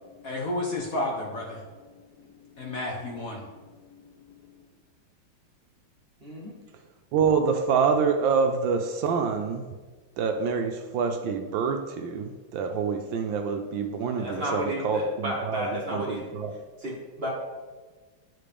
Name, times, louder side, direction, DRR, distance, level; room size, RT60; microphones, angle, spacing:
voice 1, 0.0-4.6, left 2 dB, 55° left, -2 dB, 1.1 m, -34 dB
voice 2, 6.2-6.6 14.2-16.2 16.8-17.3, equal, 40° right, -4 dB, 0.9 m, -32 dB
voice 3, 7.1-9.6 10.2-16.5, right 5 dB, 75° right, 5 dB, 1.2 m, -26 dB
10.5 x 4.1 x 3.4 m, 1.3 s
omnidirectional pair, 2.3 m